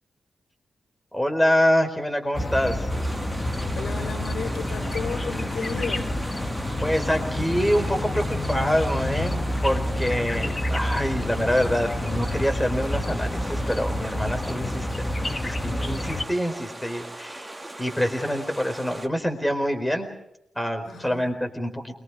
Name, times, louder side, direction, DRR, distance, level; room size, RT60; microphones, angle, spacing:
voice 1, 1.1-2.9 6.8-20.1 20.5-21.9, equal, 5° left, 5 dB, 4.6 m, -26 dB
sound 1, 2.3-16.2, left 1 dB, 25° left, 1.7 m, -28 dB
sound 2, 2.9-19.1, right 2 dB, 15° right, 2.4 m, -39 dB
voice 2, 3.8-6.1 20.9-21.3, left 4 dB, 80° left, 6 dB, 4.2 m, -33 dB
28.5 x 24.0 x 5.0 m, 0.80 s
wide cardioid pair, 115°, 0 cm